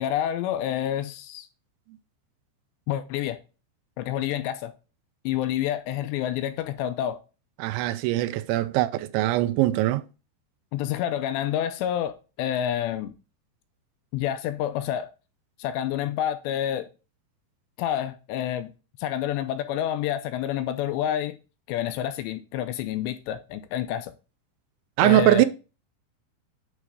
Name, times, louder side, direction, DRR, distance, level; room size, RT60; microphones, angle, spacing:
voice 1, 0.0-1.5 2.9-3.4 4.0-4.7 5.3-7.2 10.7-13.1 14.1-15.1 15.6-16.9 17.8-18.7 19.0-21.4 21.7-24.1 25.0-25.5, left 11 dB, 85° left, 2.7 m, -28 dB
voice 2, 7.6-10.0 25.0-25.5, right 15 dB, 90° right, 2.9 m, -21 dB
8.6 x 3.2 x 4.9 m
omnidirectional pair, 5.2 m